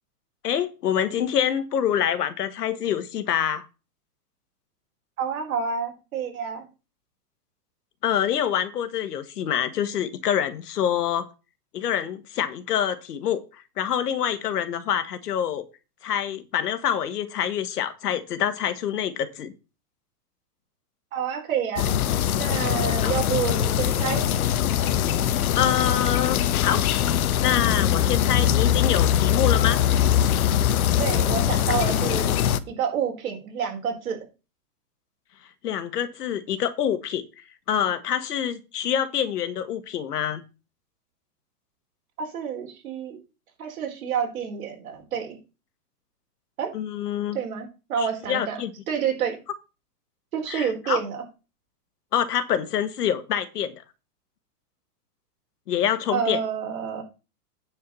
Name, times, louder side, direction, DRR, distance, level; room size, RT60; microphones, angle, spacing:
voice 1, 0.4-3.7 8.0-11.3 11.7-15.6 16.0-19.5 23.0-23.1 25.5-26.9 27.4-29.8 35.6-37.2 37.7-40.4 46.7-47.4 48.0-48.7 50.5-51.0 52.1-53.8 55.7-56.4, left 9 dB, 80° left, 1.7 m, -26 dB
voice 2, 5.2-6.7 21.1-21.9 22.4-24.2 31.0-32.3 32.7-34.2 42.2-43.2 43.6-45.4 46.6-46.7 47.3-49.4 50.3-51.2 56.1-57.0, right 7 dB, 60° right, 4.4 m, -28 dB
sound 1, 21.8-32.6, left 10 dB, 65° left, 1.0 m, -22 dB
9.7 x 5.0 x 6.9 m
supercardioid pair, 175°, 47 cm